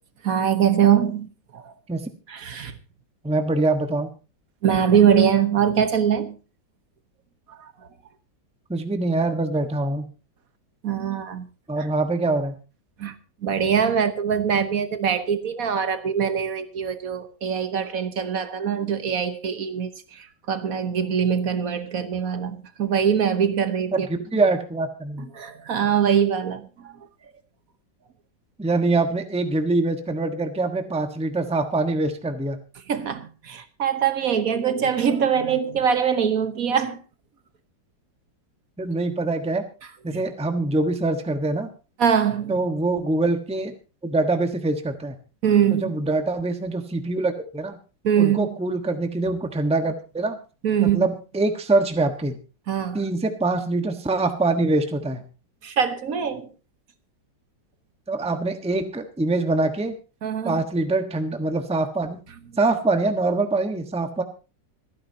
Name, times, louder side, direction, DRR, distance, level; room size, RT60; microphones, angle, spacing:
voice 1, 0.2-1.7 2.3-2.7 4.6-6.4 7.6-7.7 10.8-11.5 13.0-13.1 13.4-24.1 25.3-26.9 32.9-37.0 40.1-40.2 42.0-42.5 45.4-45.9 48.0-48.5 50.6-51.1 52.7-53.0 55.6-56.5 60.2-60.6, right 8 dB, 55° right, 1.4 m, -23 dB
voice 2, 3.2-4.1 8.7-10.1 11.7-12.5 24.1-25.3 28.6-32.6 38.8-39.6 40.0-41.7 42.5-43.7 44.0-45.2 45.7-47.8 48.2-50.4 50.8-52.4 52.9-55.2 58.1-59.9 60.4-62.2 62.6-64.2, right 2 dB, 5° right, 1.0 m, -24 dB
26.0 x 10.0 x 2.8 m
omnidirectional pair, 2.0 m